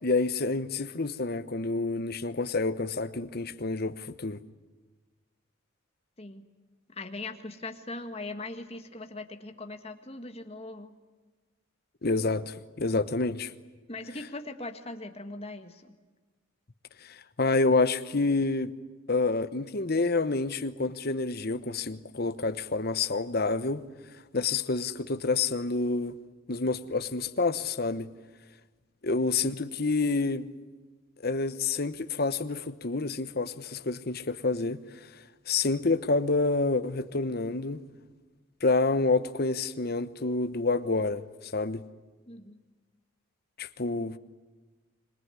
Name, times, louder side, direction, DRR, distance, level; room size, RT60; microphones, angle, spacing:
voice 1, 0.0-4.4 12.0-13.5 17.0-18.7 19.1-23.8 24.3-26.2 26.5-28.1 29.0-30.5 31.2-34.8 35.5-37.8 38.6-41.8 43.6-44.2, left 3 dB, 50° left, 1.0 m, -28 dB
voice 2, 6.9-11.0 13.9-15.9 42.3-42.6, left 2 dB, 30° left, 1.7 m, -40 dB
26.0 x 21.5 x 9.7 m
head